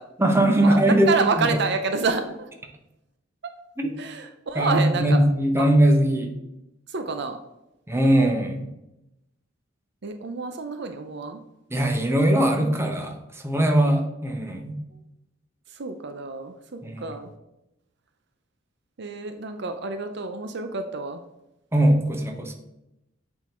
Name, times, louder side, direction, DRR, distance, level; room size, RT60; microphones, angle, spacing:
voice 1, 0.2-1.1 1.4-1.6 3.8-3.9 4.5-6.3 7.9-8.7 11.7-14.8 16.8-17.0 21.7-22.5, right 1 dB, 15° right, 3 dB, 0.9 m, -21 dB
voice 2, 1.1-2.5 3.4-3.6 4.0-5.2 5.6-5.7 6.9-7.4 10.0-11.4 15.7-17.3 19.0-21.2, right 4 dB, 60° right, 7 dB, 0.6 m, -28 dB
8.3 x 3.8 x 4.4 m, 0.89 s
head